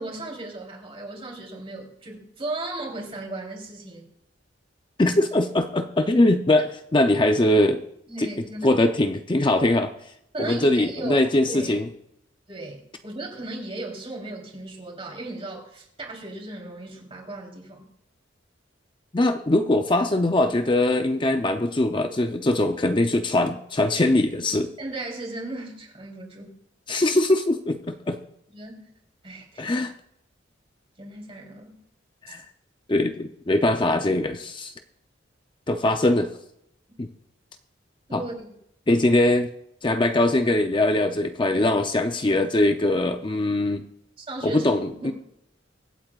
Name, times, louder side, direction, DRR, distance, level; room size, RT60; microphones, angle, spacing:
voice 1, 0.0-4.1 8.1-8.7 10.3-11.8 12.5-17.9 24.8-26.6 28.5-28.9 29.2-29.8 31.0-31.8 32.3-32.4 38.1-38.5 41.5-41.7 44.2-45.1, right 2 dB, 30° right, 0 dB, 3.4 m, -36 dB
voice 2, 5.0-7.8 8.2-8.3 8.6-9.9 10.4-11.9 19.1-24.7 26.9-27.8 28.1-28.2 29.6-29.9 32.3-32.4 32.9-34.7 35.7-36.3 37.0-37.1 38.1-38.2 38.9-39.5 39.8-43.8 44.4-45.1, left 1 dB, 25° left, 6 dB, 0.6 m, -21 dB
24.5 x 8.6 x 2.4 m, 0.78 s
head